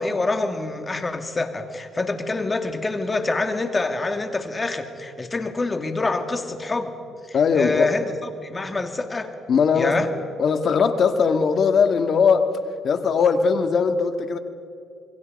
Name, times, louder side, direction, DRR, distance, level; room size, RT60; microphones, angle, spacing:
voice 1, 0.0-6.9 7.2-8.1 8.4-9.3 9.7-10.1, left 3 dB, 25° left, 7 dB, 2.5 m, -26 dB
voice 2, 7.3-7.9 9.5-10.1 10.4-12.6 12.8-14.4, left 5 dB, 55° left, 9 dB, 1.8 m, -20 dB
27.5 x 23.0 x 5.4 m, 2.6 s
cardioid pair, 90°, 0 cm